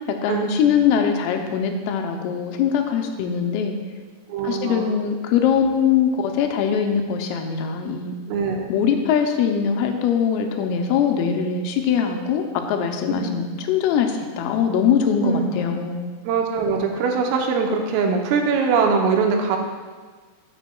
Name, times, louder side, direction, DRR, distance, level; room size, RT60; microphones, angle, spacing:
voice 1, 0.2-3.8 4.4-8.2 8.7-16.0, left 7 dB, 85° left, 4 dB, 3.4 m, -22 dB
voice 2, 4.3-5.0 8.3-8.7 13.1-13.3 15.2-15.5 16.3-19.6, right 5 dB, 85° right, 2 dB, 3.4 m, -22 dB
12.0 x 9.1 x 2.3 m, 1.5 s
omnidirectional pair, 5.8 m